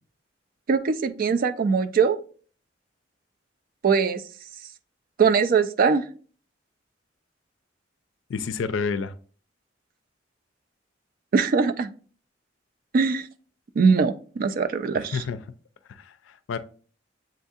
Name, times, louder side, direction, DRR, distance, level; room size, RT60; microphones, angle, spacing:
voice 1, 0.7-2.2 3.8-4.2 5.2-6.0 11.3-11.9 12.9-13.3 13.8-15.2, right 5 dB, 50° right, 9 dB, 0.3 m, -21 dB
voice 2, 8.3-9.1 15.1-15.4 15.9-16.6, left 5 dB, 80° left, 12 dB, 0.4 m, -29 dB
7.3 x 2.6 x 2.4 m, 0.41 s
head